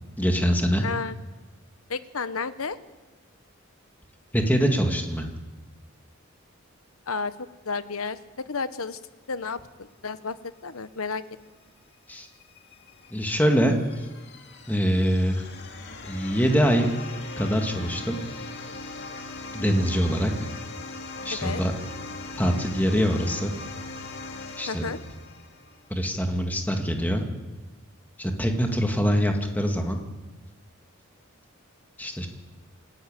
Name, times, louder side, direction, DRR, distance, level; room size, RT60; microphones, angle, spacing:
voice 1, 0.2-0.8 4.3-5.3 12.1-12.3 13.1-14.1 14.7-15.5 16.0-17.0 17.4-18.2 19.5-20.3 21.2-21.7 22.3-23.5 24.6-24.9 25.9-27.3 28.2-30.0 32.0-32.3, equal, 10° left, 3 dB, 2.1 m, -24 dB
voice 2, 0.8-1.2 1.9-2.8 7.1-7.3 7.7-8.2 8.5-9.0 9.3-10.3 10.6-11.2 21.3-21.6 24.7-25.0, left 4 dB, 90° left, 13 dB, 1.0 m, -31 dB
sound 1, 12.1-25.9, left 3 dB, 55° left, 2.2 m, -40 dB
26.5 x 12.0 x 9.1 m, 1.2 s
head